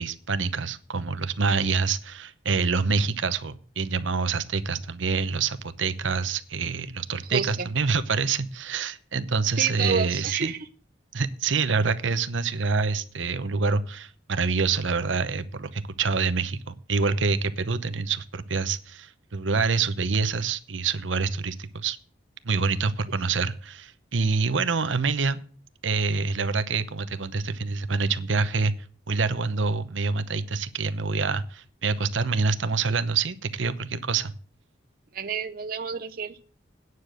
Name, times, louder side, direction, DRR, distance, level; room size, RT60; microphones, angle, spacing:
voice 1, 0.0-10.5 11.1-22.0 22.4-25.4 25.8-28.7 29.1-34.3, right 4 dB, 85° right, 13 dB, 0.8 m, -26 dB
voice 2, 7.3-7.7 9.6-10.7 35.1-36.4, right 6 dB, 50° right, 8 dB, 0.6 m, -29 dB
9.6 x 6.8 x 7.8 m, 0.43 s
head